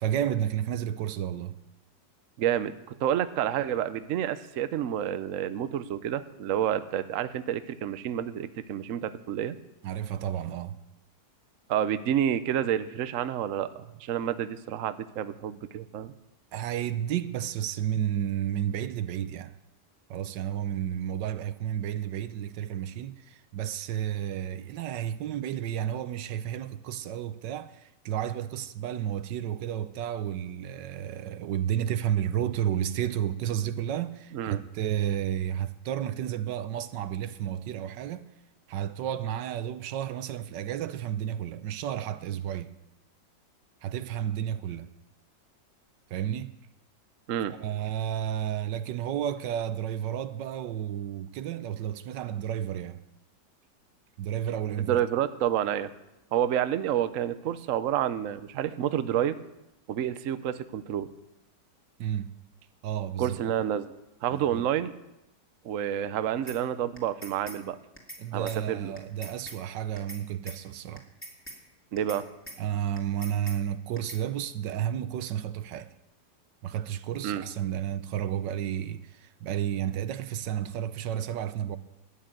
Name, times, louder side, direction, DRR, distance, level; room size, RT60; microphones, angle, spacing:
voice 1, 0.0-1.6 9.8-10.8 16.5-19.6 20.1-38.3 38.7-42.7 43.8-44.9 46.1-46.6 47.5-53.0 54.2-55.0 62.0-62.3 62.8-63.4 64.3-64.7 68.2-71.0 72.6-75.9 76.6-81.8, right 10 dB, 80° right, 1.3 m, -32 dB
voice 2, 2.4-9.6 11.7-16.1 34.3-34.6 47.3-47.5 54.8-55.9 56.3-59.4 59.9-61.1 63.2-63.9 64.2-64.9 65.6-67.8 68.3-68.9 71.9-72.3 77.2-77.4, right 10 dB, 60° right, 0.9 m, -29 dB
sound 1, 66.5-66.6 67.0-67.6 68.0-68.2 68.5-68.6 69.0-69.6 70.0-70.2 70.5-70.6 71.0-71.6 72.0-72.2 72.5-72.6 73.0-73.6 74.0-74.2, right 1 dB, 5° left, 2.1 m, -42 dB
13.0 x 8.9 x 8.9 m
omnidirectional pair, 1.9 m